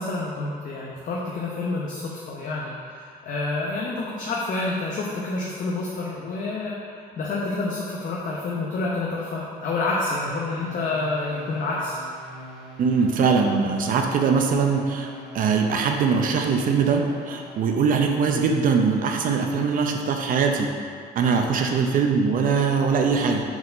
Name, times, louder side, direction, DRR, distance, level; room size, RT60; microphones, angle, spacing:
voice 1, 0.0-12.0, left 2 dB, 50° left, -4 dB, 0.9 m, -28 dB
sound 1, 10.3-17.8, right 1 dB, 25° right, 1.4 m, -43 dB
voice 2, 12.8-20.7 21.2-23.4, right 5 dB, 55° right, 3 dB, 0.7 m, -22 dB
4.7 x 4.2 x 5.3 m, 2.3 s
cardioid pair, 110°, 17 cm